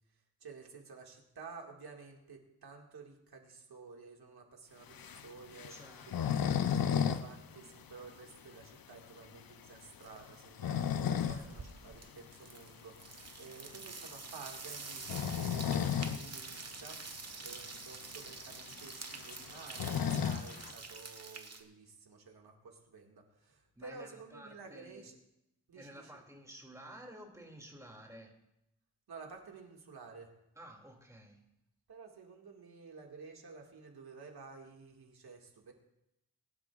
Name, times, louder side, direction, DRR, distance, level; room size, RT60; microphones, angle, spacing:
voice 1, 0.1-6.4 6.9-17.0 17.4-25.2 25.7-26.2 29.1-30.3 31.9-35.7, right 4 dB, 85° right, 1 dB, 2.2 m, -52 dB
sound 1, 4.9-7.3 7.5-7.6 8.0-8.1 8.6-8.7 10.3-11.5 11.9-12.0 13.5-13.7 14.9-16.2 16.6-16.7 16.9-17.0 17.8-17.9 18.1-20.7, left 8 dB, 70° left, 0.7 m, -33 dB
voice 2, 5.7-6.3 11.1-11.6 23.8-25.1 25.7-28.3 30.6-31.4, right 1 dB, 10° right, 0 dB, 2.6 m, -52 dB
sound 2, 10.0-10.4 10.7-21.6, right 4 dB, 40° right, 1.4 m, -47 dB
22.0 x 11.5 x 2.5 m, 0.85 s
wide cardioid pair, 105°, 37 cm